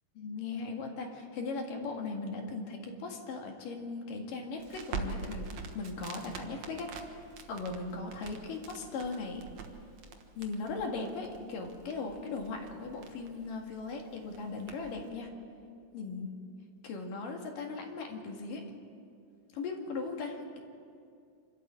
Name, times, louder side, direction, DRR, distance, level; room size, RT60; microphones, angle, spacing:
voice 1, 0.2-6.9 7.5-9.5 10.4-15.3 15.9-16.4 16.8-18.6 19.5-20.6, left 3 dB, 85° left, 2 dB, 3.7 m, -38 dB
Crackle, 4.6-15.1, right 5 dB, 60° right, 2.4 m, -45 dB
26.0 x 13.0 x 8.7 m, 2.4 s
omnidirectional pair, 3.7 m